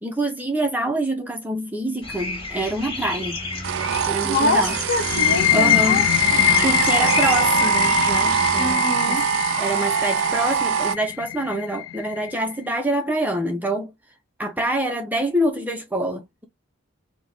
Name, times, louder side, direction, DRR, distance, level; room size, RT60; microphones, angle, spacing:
voice 1, 0.0-3.5 4.1-4.8 5.5-9.2 9.6-13.9 14.4-16.5, right 1 dB, 10° right, 0.5 m, -26 dB
sound 1, 2.0-8.7, left 2 dB, 30° left, 1.7 m, -31 dB
sound 2, 3.6-11.0, right 7 dB, 65° right, 0.3 m, -23 dB
voice 2, 3.9-6.0 6.3-6.6 8.6-9.2, left 2 dB, 50° left, 1.3 m, -25 dB
sound 3, 5.0-12.4, left 13 dB, 80° left, 0.3 m, -23 dB
4.5 x 2.1 x 2.8 m
head